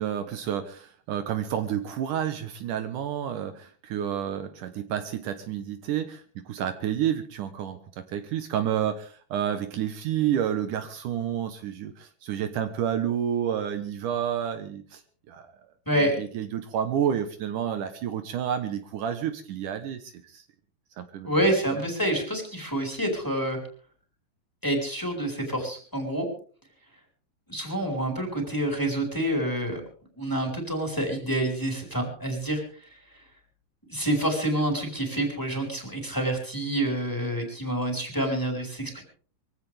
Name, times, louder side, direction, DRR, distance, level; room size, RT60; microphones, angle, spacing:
voice 1, 0.0-15.0 15.3-15.5 15.9-20.4 21.0-21.8, right 9 dB, 70° right, 8 dB, 2.6 m, -30 dB
voice 2, 15.9-16.2 21.2-23.6 24.6-26.3 27.5-29.8 30.2-32.6 33.9-39.0, right 1 dB, 5° left, 2 dB, 4.5 m, -27 dB
24.0 x 16.0 x 3.5 m, 0.42 s
omnidirectional pair, 3.9 m